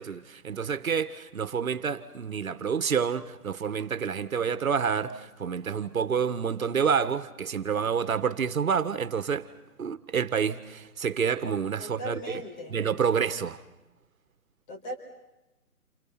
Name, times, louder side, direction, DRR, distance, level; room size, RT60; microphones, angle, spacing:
voice 1, 0.0-9.5 9.8-12.4 12.7-13.6, right 6 dB, 60° right, 1.7 m, -28 dB
voice 2, 11.8-12.8 14.7-14.9, equal, 30° left, 4.5 m, -38 dB
29.0 x 28.5 x 6.0 m
hypercardioid pair, 155°, 46 cm